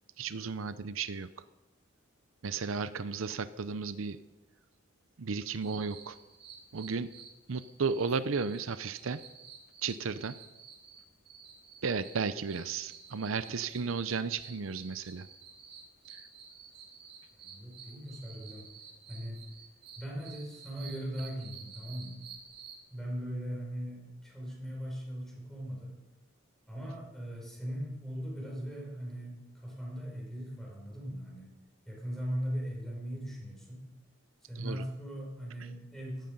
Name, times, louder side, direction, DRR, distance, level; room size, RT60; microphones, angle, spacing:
voice 1, 0.2-1.3 2.4-4.2 5.2-6.2 6.7-7.1 7.5-9.2 9.8-10.4 11.8-15.3 34.6-34.8, right 5 dB, 80° right, 13 dB, 0.6 m, -34 dB
sound 1, 5.6-22.8, right 6 dB, 55° right, 4.2 m, -52 dB
voice 2, 17.4-18.6 19.1-19.5 20.0-22.2 22.9-26.0 26.7-31.5 31.9-33.9 34.5-36.3, equal, ahead, -3 dB, 5.6 m, -39 dB
16.5 x 13.0 x 5.4 m, 1.0 s
head